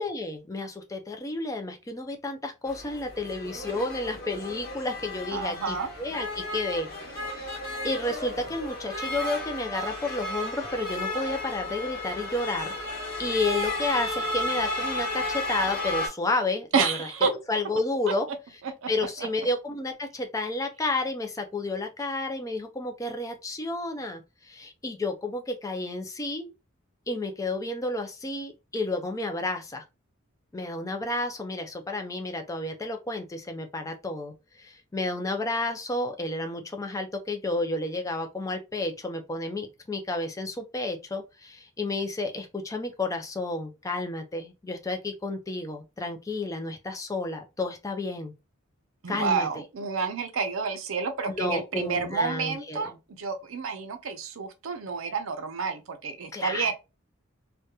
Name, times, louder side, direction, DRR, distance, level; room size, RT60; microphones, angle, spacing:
voice 1, 0.0-7.6 7.8-12.7 13.2-17.0 17.3-18.3 18.9-26.5 27.1-29.8 30.5-48.3 49.1-49.6 51.3-52.9 56.3-56.7, left 2 dB, 15° left, 0.4 m, -31 dB
sound 1, 2.7-16.1, left 1 dB, 50° left, 1.2 m, -33 dB
voice 2, 5.3-5.9 16.7-17.3 18.6-18.9 19.2-19.3 49.0-56.7, right 5 dB, 75° right, 0.5 m, -29 dB
2.8 x 2.2 x 2.3 m
head